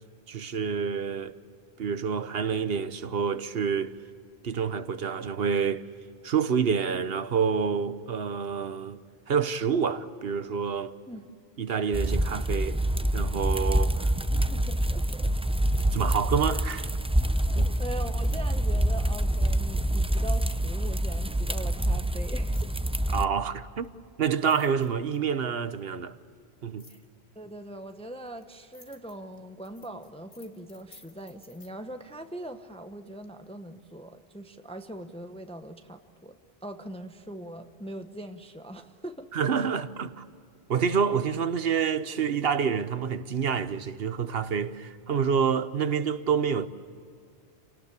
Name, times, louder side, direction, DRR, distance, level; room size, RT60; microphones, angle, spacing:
voice 1, 0.3-1.3 1.8-4.0 4.4-5.9 6.2-9.0 9.3-11.0 11.6-12.8 13.1-14.1 15.9-16.9 17.6-17.7 23.1-23.9 24.2-26.2 26.6-26.9 39.3-40.3 40.7-46.7, right 6 dB, 65° right, 1.1 m, -28 dB
sound 1, 11.9-23.3, right 1 dB, 10° right, 0.3 m, -26 dB
voice 2, 14.3-15.3 17.5-22.7 26.9-27.0 27.3-36.4 36.6-39.3, right 1 dB, 5° left, 0.9 m, -41 dB
sound 2, 17.6-18.8 20.3-20.6 22.4-22.9 23.8-23.9 24.3-25.4 26.8-27.1 27.9-31.7, left 3 dB, 65° left, 2.2 m, -55 dB
28.0 x 18.5 x 8.4 m
omnidirectional pair, 1.1 m